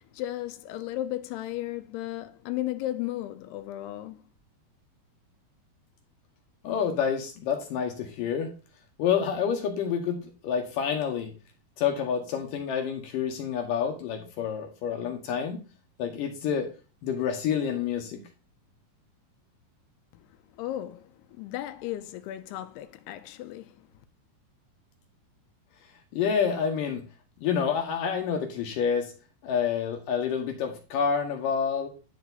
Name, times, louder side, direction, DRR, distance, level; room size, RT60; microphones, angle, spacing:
voice 1, 0.1-4.2 20.6-21.1 21.4-23.7, left 14 dB, 90° left, 2.8 m, -34 dB
voice 2, 6.6-8.5 9.0-11.3 11.8-15.6 16.0-16.7 17.0-18.2 26.2-27.0 27.4-29.1 29.4-31.9, left 7 dB, 70° left, 2.4 m, -28 dB
10.0 x 4.7 x 4.1 m
omnidirectional pair, 4.6 m